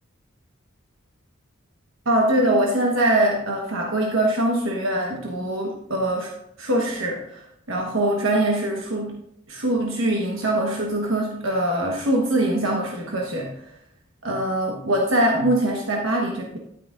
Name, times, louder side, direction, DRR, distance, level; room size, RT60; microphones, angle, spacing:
voice 1, 2.0-6.3 6.6-9.2 9.5-13.5 14.2-16.6, right 1 dB, 85° right, 0 dB, 1.2 m, -23 dB
10.5 x 9.1 x 2.5 m, 0.75 s
head